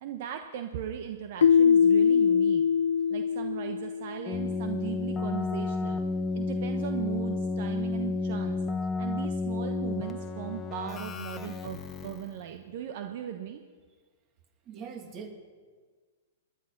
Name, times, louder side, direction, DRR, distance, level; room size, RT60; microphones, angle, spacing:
voice 1, 0.0-2.6 3.1-6.0 6.3-8.6 9.0-13.6, right 10 dB, 55° right, 6 dB, 1.1 m, -37 dB
Keyboard (musical), 1.4-4.2, left 7 dB, 85° left, 0.3 m, -22 dB
Keyboard (musical) 2, 4.3-12.4, left 3 dB, 20° left, 1.1 m, -32 dB
voice 2, 14.7-15.3, right 6 dB, 30° right, 5 dB, 2.4 m, -41 dB
19.5 x 11.5 x 6.0 m, 1.5 s
hypercardioid pair, 130°, 0 cm